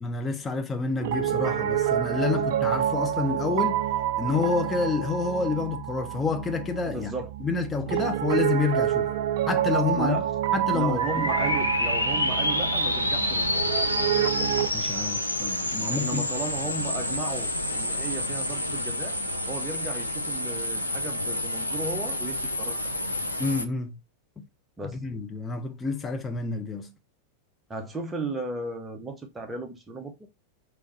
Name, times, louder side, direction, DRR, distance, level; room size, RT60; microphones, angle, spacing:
voice 1, 0.0-3.8 4.2-7.1 7.4-9.1 9.5-10.2 10.5-11.0 14.7-16.2 23.4-23.9 25.0-26.9, left 4 dB, 15° left, 0.7 m, -28 dB
Piano, 1.0-14.7, right 10 dB, 55° right, 0.3 m, -28 dB
voice 2, 6.9-7.3 9.9-10.3 10.7-13.6 15.9-19.2 19.5-22.9 24.8-25.0 27.7-30.1, right 3 dB, 15° right, 0.9 m, -35 dB
sound 1, 11.0-23.7, left 1 dB, 85° left, 0.5 m, -28 dB
4.6 x 3.1 x 2.9 m
figure-of-eight pair, 90°, 0 cm